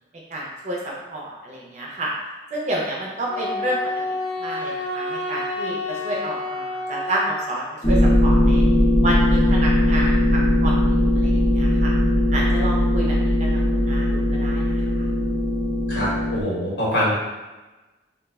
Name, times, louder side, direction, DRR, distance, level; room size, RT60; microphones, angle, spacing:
voice 1, 0.3-2.1 2.5-3.8 4.1-8.6 9.0-11.9 12.3-15.1, right 1 dB, 40° right, -3 dB, 0.5 m, -30 dB
Wind instrument woodwind instrument, 3.3-7.5, left 2 dB, 55° left, 0.9 m, -29 dB
sound 1, 7.8-16.4, left 1 dB, 30° left, 0.7 m, -19 dB
voice 2, 15.9-17.2, equal, 75° left, -8 dB, 1.2 m, -24 dB
2.4 x 2.1 x 3.4 m, 1.1 s
head